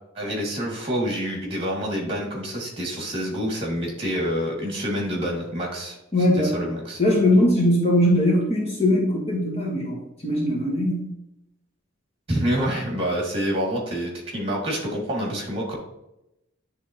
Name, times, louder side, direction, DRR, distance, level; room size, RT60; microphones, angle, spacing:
voice 1, 0.1-6.0 6.4-7.0 12.3-15.8, equal, 25° right, -2 dB, 2.3 m, -27 dB
voice 2, 6.1-6.5 7.0-11.1, left 1 dB, 30° left, -3 dB, 1.5 m, -20 dB
10.0 x 3.6 x 3.0 m, 0.87 s
head